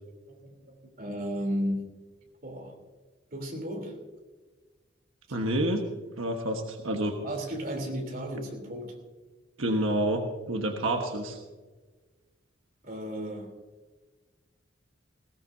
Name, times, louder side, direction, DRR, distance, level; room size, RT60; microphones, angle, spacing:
voice 1, 0.3-2.0 2.4-2.8 3.3-4.0 7.2-9.0 12.8-13.5, equal, 45° right, 1 dB, 3.3 m, -34 dB
voice 2, 5.3-5.8 6.2-7.2 9.6-11.4, right 1 dB, 90° right, 3 dB, 1.4 m, -28 dB
20.0 x 16.5 x 2.7 m, 1.3 s
head